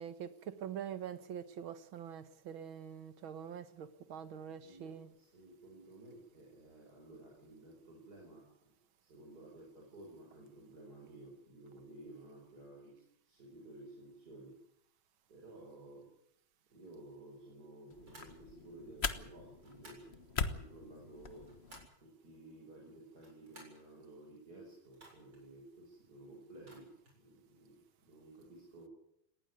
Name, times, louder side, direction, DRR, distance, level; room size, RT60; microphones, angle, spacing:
voice 1, 0.0-5.1, right 8 dB, 85° right, 12 dB, 2.2 m, -45 dB
voice 2, 4.3-8.7 9.1-14.5 15.3-16.1 16.7-21.5 22.0-28.9, right 2 dB, 50° right, 0 dB, 6.0 m, -54 dB
sound 1, 17.9-21.9, left 5 dB, 35° left, 1.3 m, -41 dB
sound 2, 18.0-18.4 19.6-20.1 21.2-22.0 23.1-23.8 24.9-25.5 26.5-27.2, right 2 dB, 70° right, 8.2 m, -59 dB
19.0 x 18.5 x 9.6 m, 0.79 s
omnidirectional pair, 2.2 m